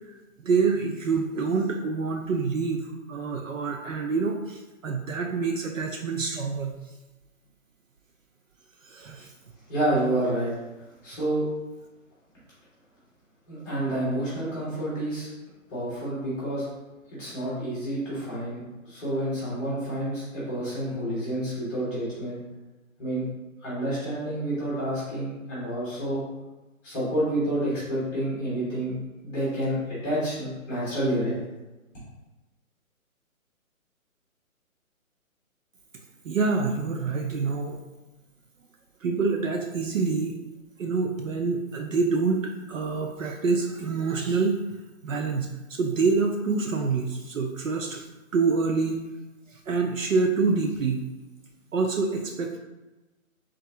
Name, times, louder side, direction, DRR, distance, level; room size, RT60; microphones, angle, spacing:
voice 1, 0.4-6.8 8.9-9.3 36.2-37.8 39.0-40.4 40.8-44.6 45.0-48.0 48.3-49.0 49.5-51.0 51.7-52.6, right 4 dB, 65° right, 3 dB, 0.6 m, -26 dB
voice 2, 9.7-10.5 11.0-11.4 13.5-15.3 15.7-16.6 17.1-22.4 23.0-23.2 23.6-26.2 26.8-28.9 29.2-31.3, right 1 dB, 5° left, -11 dB, 1.3 m, -29 dB
3.7 x 3.3 x 2.8 m, 1.1 s
hypercardioid pair, 170°, 42 cm